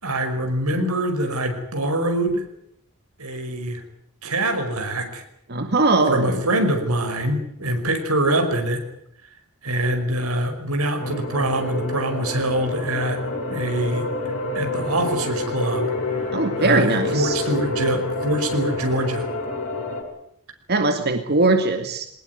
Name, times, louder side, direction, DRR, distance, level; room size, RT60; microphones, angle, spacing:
voice 1, 0.0-2.5 3.2-3.8 4.2-5.2 6.1-8.8 9.6-13.2 13.5-14.1 14.5-15.9 16.6-19.3, right 1 dB, 90° right, 6 dB, 5.4 m, -24 dB
voice 2, 5.5-6.4 16.3-17.4 20.7-22.1, right 2 dB, 50° right, 6 dB, 2.1 m, -20 dB
sound 1, 11.0-20.0, left 2 dB, 65° left, 7.3 m, -28 dB
23.5 x 19.5 x 9.6 m, 0.73 s
head